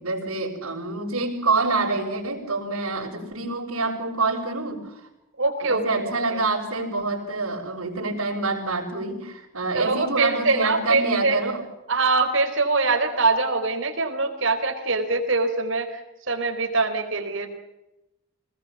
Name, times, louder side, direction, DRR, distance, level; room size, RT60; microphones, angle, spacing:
voice 1, 0.0-5.1 5.6-11.6, right 3 dB, 85° right, -5 dB, 6.0 m, -26 dB
voice 2, 5.4-6.4 9.7-11.4 11.9-16.0 16.3-17.5, right 3 dB, 60° right, 5 dB, 4.3 m, -23 dB
26.0 x 20.0 x 7.3 m, 0.95 s
head